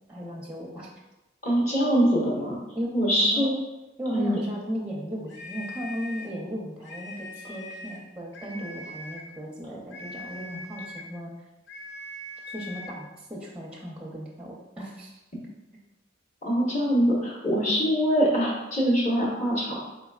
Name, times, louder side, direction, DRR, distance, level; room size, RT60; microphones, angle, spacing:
voice 1, 0.1-0.9 2.7-3.5 4.0-11.3 12.5-15.2, equal, 5° right, -3 dB, 0.6 m, -36 dB
voice 2, 1.4-2.6 2.9-3.5 4.1-4.4 16.4-19.8, equal, 40° left, -4 dB, 1.2 m, -23 dB
sound 1, 5.3-6.4 6.8-8.1 8.3-9.3 9.9-11.1 11.7-13.0, left 2 dB, 70° left, 0.6 m, -41 dB
4.0 x 3.8 x 2.4 m, 1.0 s
head